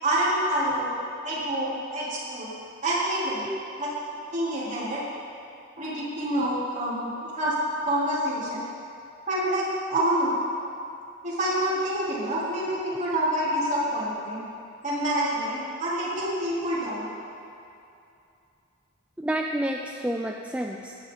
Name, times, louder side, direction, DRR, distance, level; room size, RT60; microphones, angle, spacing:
voice 1, 0.0-0.9 1.2-2.6 2.8-3.4 3.8-3.9 4.3-5.0 5.8-7.1 7.4-7.5 7.8-8.6 9.3-10.3 11.2-14.4 14.8-17.1, right 1 dB, 35° right, -8 dB, 3.6 m, -27 dB
voice 2, 19.2-21.0, right 1 dB, 5° right, 1 dB, 0.4 m, -29 dB
17.0 x 10.5 x 4.1 m, 2.6 s
head